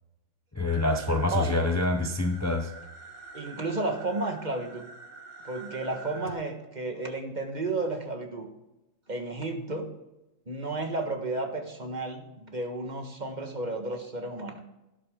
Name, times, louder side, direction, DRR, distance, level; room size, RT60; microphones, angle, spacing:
voice 1, 0.5-2.7, left 2 dB, 15° left, 5 dB, 0.6 m, -26 dB
sound 1, 0.7-6.3, right 3 dB, 60° right, 2.2 m, -47 dB
voice 2, 1.3-1.6 3.3-4.9 5.4-8.5 9.1-9.9 10.5-14.6, right 2 dB, 35° right, 4 dB, 1.5 m, -32 dB
12.5 x 10.5 x 3.7 m, 0.96 s
omnidirectional pair, 1.4 m